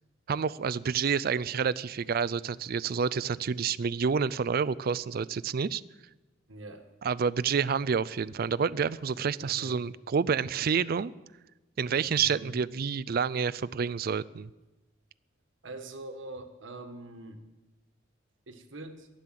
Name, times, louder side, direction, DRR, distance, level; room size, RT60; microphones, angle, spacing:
voice 1, 0.3-5.8 7.0-11.1 11.8-14.5, right 6 dB, 50° right, 19 dB, 0.4 m, -29 dB
voice 2, 6.5-6.9 9.4-9.8 12.1-12.5 15.6-17.4 18.5-19.1, right 2 dB, 75° right, 6 dB, 1.5 m, -44 dB
11.5 x 11.5 x 7.6 m, 1.1 s
head